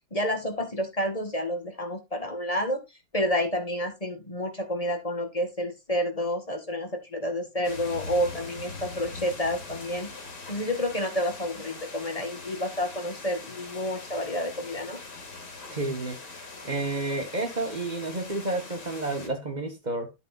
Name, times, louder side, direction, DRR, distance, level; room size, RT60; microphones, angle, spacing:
voice 1, 0.1-2.8 3.1-10.1 10.5-15.0, equal, 20° left, 1.9 m, -29 dB
sound 1, 7.6-19.3, left 3 dB, 80° left, 3.2 m, -42 dB
voice 2, 15.7-16.2 16.6-20.1, right 2 dB, 25° right, 1.6 m, -30 dB
11.0 x 8.0 x 2.5 m
omnidirectional pair, 1.8 m